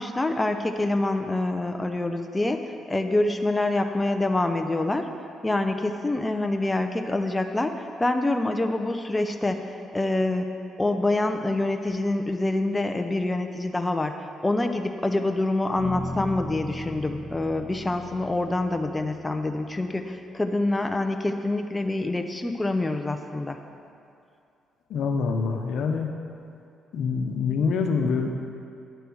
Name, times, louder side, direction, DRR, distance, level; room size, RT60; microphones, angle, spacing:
voice 1, 0.0-5.1 5.4-9.7 9.9-10.5 10.8-23.6, left 2 dB, 15° left, 5 dB, 0.6 m, -26 dB
sound 1, 15.8-19.9, left 1 dB, 80° right, 2.9 m, -37 dB
voice 2, 24.9-26.1 26.9-28.3, left 5 dB, 75° left, 4 dB, 0.9 m, -25 dB
10.5 x 6.7 x 6.3 m, 2.5 s
cardioid pair, 90°, 0 cm